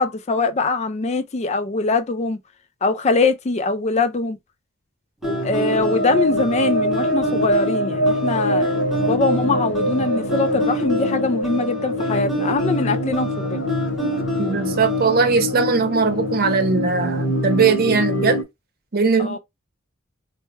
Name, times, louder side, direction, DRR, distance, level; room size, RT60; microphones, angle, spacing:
voice 1, 0.0-2.4 2.8-4.4 5.4-13.6 19.2-19.4, left 3 dB, 35° left, 0.4 m, -22 dB
sound 1, 5.2-18.4, left 1 dB, 60° left, 0.9 m, -24 dB
sound 2, 5.2-15.3, right 2 dB, ahead, 0.7 m, -30 dB
voice 2, 14.4-18.4 18.9-19.4, right 4 dB, 45° right, 0.8 m, -19 dB
4.4 x 2.1 x 3.1 m
head